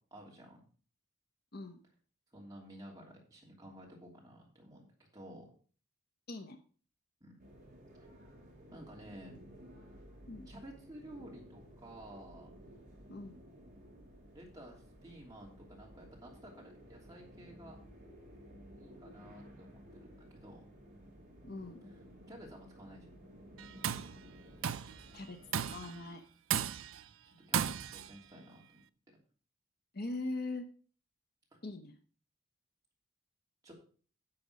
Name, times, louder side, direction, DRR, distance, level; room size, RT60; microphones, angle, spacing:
voice 1, 0.1-0.6 2.3-3.0 3.3-4.9 5.1-5.4 7.2-7.4 8.7-9.4 10.5-12.5 14.3-17.8 18.8-20.7 22.3-23.1 27.2-28.8 33.6-33.7, right 1 dB, 15° right, -2 dB, 3.0 m, -52 dB
voice 2, 6.3-6.6 10.3-10.5 13.1-13.4 21.4-21.8 25.1-25.4 25.7-26.2 29.9-30.7 31.6-32.0, left 2 dB, 45° left, 7 dB, 0.9 m, -41 dB
sound 1, 7.4-25.8, equal, 35° right, 4.8 m, -55 dB
Tools, 23.6-24.1 24.6-25.0 25.5-26.0 26.5-27.0 27.5-28.1, right 8 dB, 70° right, 0.5 m, -34 dB
10.5 x 6.9 x 5.1 m, 0.41 s
head